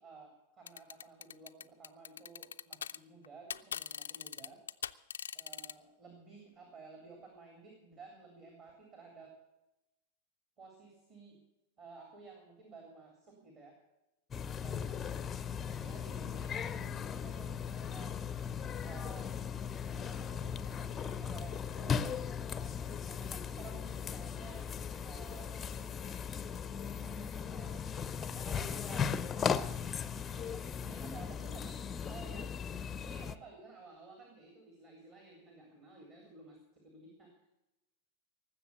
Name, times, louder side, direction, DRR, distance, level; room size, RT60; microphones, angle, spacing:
voice 1, 0.0-4.6 5.3-9.4 10.6-11.4 11.8-13.8 14.3-15.2 15.6-18.2 18.6-19.3 19.8-22.0 22.5-24.7 25.0-25.7 26.9-27.8 28.3-29.8 30.3-31.7 32.0-37.3, right 4 dB, 35° right, 2 dB, 3.7 m, -54 dB
sound 1, 0.7-3.0 3.2-5.7, left 8 dB, 65° left, 0.4 m, -41 dB
sound 2, 14.3-33.4, left 7 dB, 20° left, 0.6 m, -38 dB
19.0 x 7.8 x 8.3 m, 0.95 s
figure-of-eight pair, 90°, 0 cm